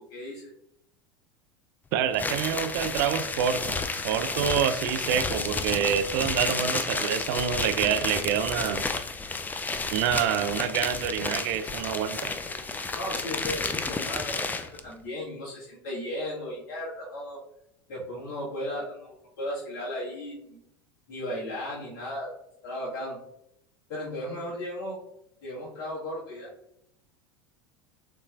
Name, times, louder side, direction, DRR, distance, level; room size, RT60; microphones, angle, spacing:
voice 1, 0.1-0.5 12.9-17.4 17.9-20.6 21.1-22.3 22.6-23.2 23.9-25.0 25.4-26.5, left 1 dB, 55° left, -6 dB, 1.7 m, -35 dB
voice 2, 1.9-3.8 4.0-8.8 9.9-12.3, right 9 dB, 55° right, 10 dB, 0.4 m, -27 dB
sound 1, 2.1-14.8, left 3 dB, 15° left, 0.4 m, -31 dB
6.7 x 3.0 x 2.4 m, 0.76 s
figure-of-eight pair, 80°, 14 cm